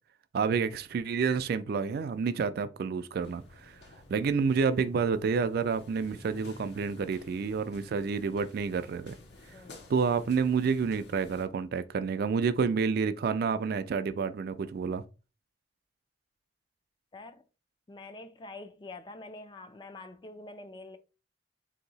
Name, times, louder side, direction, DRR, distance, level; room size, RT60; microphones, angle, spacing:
voice 1, 0.3-3.8 4.1-9.2 9.9-15.0, right 5 dB, 60° right, 0.3 m, -29 dB
sound 1, 3.2-11.4, left 2 dB, 65° left, 0.8 m, -53 dB
voice 2, 9.5-9.9 17.1-17.4 17.9-21.0, left 2 dB, 25° left, 0.4 m, -46 dB
2.8 x 2.7 x 4.0 m
head